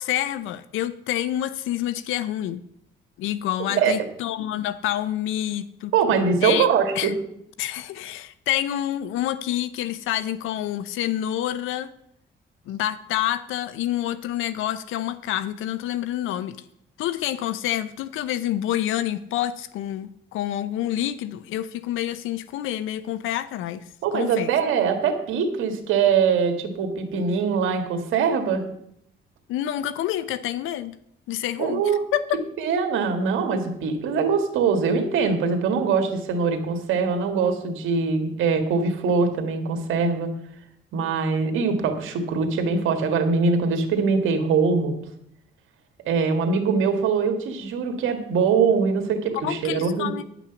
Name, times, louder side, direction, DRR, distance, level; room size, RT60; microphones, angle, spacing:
voice 1, 0.0-2.6 3.2-5.9 6.4-6.7 7.0-7.1 7.6-11.9 12.7-16.6 17.0-23.8 24.1-24.5 29.5-30.9 31.3-31.8 32.1-32.4 49.4-50.3, left 12 dB, 90° left, 14 dB, 0.6 m, -27 dB
voice 2, 5.9-7.1 24.0-28.6 31.6-32.0 32.6-40.3 40.9-44.9 46.0-50.1, right 5 dB, 85° right, 5 dB, 1.8 m, -22 dB
10.5 x 6.1 x 7.1 m, 0.75 s
cardioid pair, 90°, 20 cm